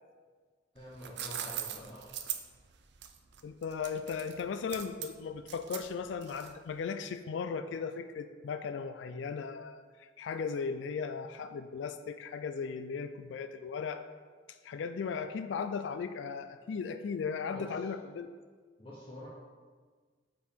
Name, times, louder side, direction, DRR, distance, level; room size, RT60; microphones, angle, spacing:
voice 1, 0.7-2.1 17.5-17.9 18.8-19.3, left 1 dB, 30° left, -6 dB, 0.9 m, -47 dB
sound 1, 0.8-6.7, right 10 dB, 65° right, 0.5 m, -41 dB
voice 2, 3.4-14.0 14.5-18.3, left 5 dB, 70° left, 9 dB, 0.3 m, -37 dB
5.2 x 4.6 x 5.1 m, 1.5 s
head